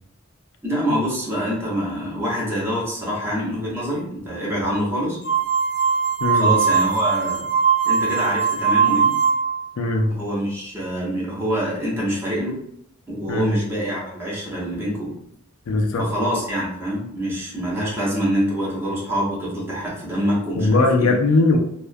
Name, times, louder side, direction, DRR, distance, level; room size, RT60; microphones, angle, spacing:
voice 1, 0.6-5.2 6.3-7.5 7.8-9.1 10.1-12.6 13.1-15.1 16.0-21.1, equal, 10° right, -6 dB, 0.7 m, -25 dB
sound 1, 5.2-9.6, right 6 dB, 40° left, 0.7 m, -20 dB
voice 2, 6.2-6.5 9.8-10.1 13.3-13.5 15.7-16.1 20.5-21.6, left 2 dB, 85° left, 4 dB, 0.4 m, -19 dB
2.3 x 2.1 x 2.5 m, 0.73 s
head